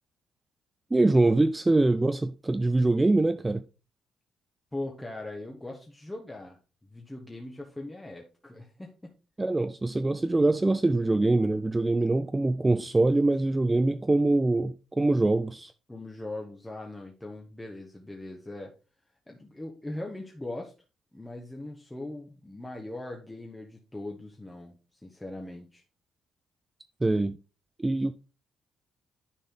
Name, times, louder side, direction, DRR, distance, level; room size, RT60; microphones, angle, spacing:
voice 1, 0.9-3.6 9.4-15.7 27.0-27.4 27.8-28.1, right 2 dB, 15° right, 0.4 m, -24 dB
voice 2, 4.7-6.6 6.9-9.1 15.9-18.7 19.3-20.7 21.1-24.7 25.0-25.8, left 2 dB, 10° left, 1.3 m, -40 dB
10.0 x 4.1 x 3.7 m
cardioid pair, 90°, 0 cm